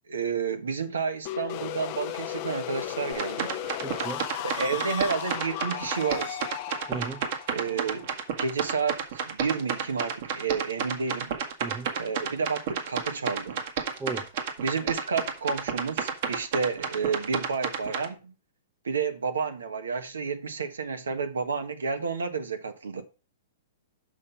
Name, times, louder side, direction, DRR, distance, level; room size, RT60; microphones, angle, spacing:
voice 1, 0.1-3.6 4.4-6.4 7.5-11.3 12.0-13.6 14.6-18.3 18.8-23.0, right 5 dB, 85° right, 1.3 m, -30 dB
sound 1, 1.2-9.0, left 12 dB, 45° left, 0.8 m, -36 dB
sound 2, 3.1-18.1, right 7 dB, 55° right, 1.6 m, -31 dB
voice 2, 3.8-4.2 6.9-7.2 11.6-11.9 14.0-14.2, right 4 dB, 20° right, 0.8 m, -35 dB
6.3 x 5.6 x 5.7 m
hypercardioid pair, 120°, 0 cm